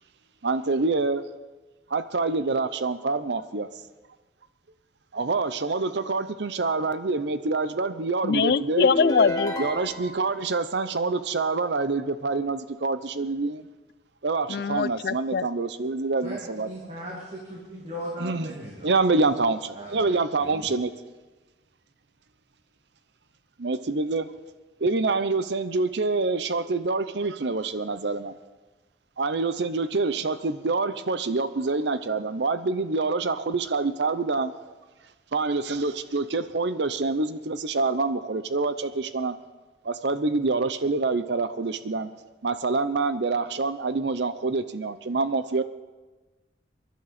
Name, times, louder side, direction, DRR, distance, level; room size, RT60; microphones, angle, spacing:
voice 1, 0.4-1.2 1.9-3.7 5.1-8.9 9.6-13.6 14.2-16.9 18.2-18.5 18.8-20.9 23.6-24.3 24.8-28.3 29.2-34.5 35.3-39.4 39.8-42.1 42.4-45.6, right 3 dB, 70° right, 12 dB, 0.7 m, -26 dB
voice 2, 8.2-9.5 14.5-15.5, left 5 dB, 55° left, 19 dB, 0.4 m, -23 dB
sound 1, 8.8-10.3, left 1 dB, 20° left, 1.4 m, -29 dB
voice 3, 16.2-19.0 19.3-19.4 19.7-20.8, equal, 35° right, -3 dB, 2.3 m, -38 dB
23.5 x 11.5 x 4.2 m, 1.2 s
head